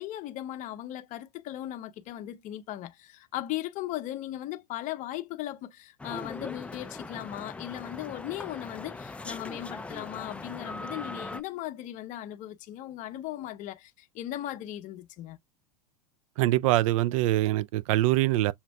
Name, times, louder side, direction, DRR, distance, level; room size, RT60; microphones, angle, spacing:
voice 1, 0.0-15.4, left 13 dB, 40° left, 0.8 m, -37 dB
sound 1, 6.0-11.4, left 2 dB, 5° left, 0.4 m, -40 dB
voice 2, 16.4-18.5, right 16 dB, 60° right, 0.4 m, -24 dB
7.1 x 2.5 x 2.2 m
hypercardioid pair, 90°, 20 cm